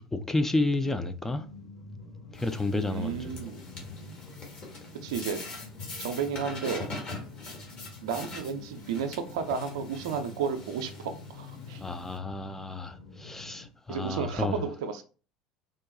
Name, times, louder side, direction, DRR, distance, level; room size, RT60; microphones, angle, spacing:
voice 1, 0.0-1.5 2.3-3.4 3.7-3.8 11.8-14.6, left 2 dB, 10° left, 0.3 m, -31 dB
sound 1, 1.2-13.7, left 3 dB, 75° left, 0.7 m, -48 dB
sound 2, 2.3-12.2, left 3 dB, 40° left, 1.2 m, -43 dB
voice 2, 2.9-3.6 5.0-5.4 6.0-6.9 8.0-11.8 13.9-15.0, right 6 dB, 70° right, 0.4 m, -32 dB
3.6 x 2.2 x 2.4 m
figure-of-eight pair, 65°, 3 cm